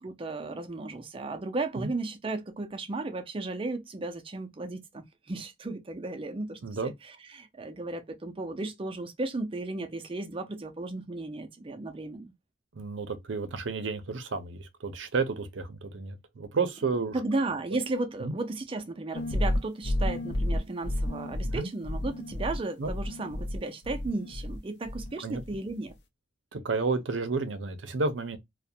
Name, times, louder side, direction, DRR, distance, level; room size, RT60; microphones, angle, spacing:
voice 1, 0.0-12.3 17.1-25.9, right 2 dB, 30° right, 0.4 m, -35 dB
voice 2, 6.6-6.9 12.7-17.2 18.2-18.4 21.4-21.7 22.8-22.9 25.2-25.4 26.5-28.4, right 4 dB, 75° right, 0.6 m, -31 dB
sound 1, 19.1-24.6 24.8-25.6, left 1 dB, 60° left, 0.5 m, -31 dB
2.4 x 2.1 x 2.6 m
head